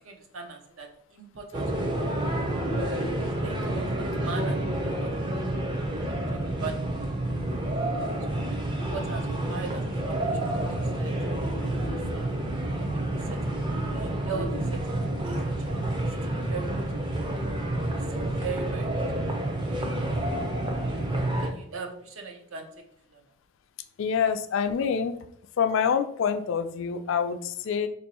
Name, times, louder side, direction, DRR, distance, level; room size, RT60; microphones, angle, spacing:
voice 1, 0.0-2.0 3.4-5.3 5.9-7.0 8.3-8.4 8.7-10.6 10.9-11.2 11.7-12.4 12.8-13.6 13.9-15.9 16.2-16.8 17.8-19.0 21.1-22.7 23.1-23.2, right 4 dB, 65° right, 4 dB, 0.6 m, -40 dB
sound 1, 1.5-21.5, right 1 dB, 20° right, 0.5 m, -29 dB
voice 2, 24.0-25.2 25.6-27.9, left 7 dB, 60° left, 9 dB, 0.3 m, -26 dB
3.0 x 2.6 x 4.1 m, 0.66 s
head